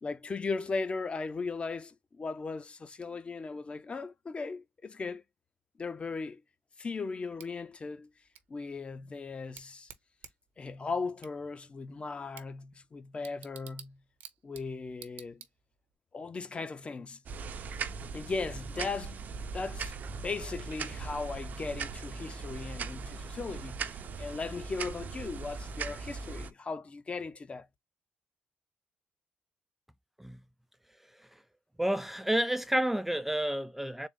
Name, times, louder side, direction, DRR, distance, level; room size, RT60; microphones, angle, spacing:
voice 1, 0.0-5.2 5.8-6.4 6.8-8.1 8.5-9.9 10.6-14.0 14.4-15.4 16.1-17.2 18.1-19.3 19.5-27.7, left 4 dB, 35° left, 0.7 m, -37 dB
Bicycle / Tick, 7.4-16.0, right 10 dB, 75° right, 1.0 m, -54 dB
sound 1, 17.3-26.5, right 5 dB, 55° right, 0.6 m, -39 dB
voice 2, 31.8-34.1, right 1 dB, 5° right, 0.3 m, -30 dB
3.9 x 2.4 x 3.6 m
supercardioid pair, 75°, 4 cm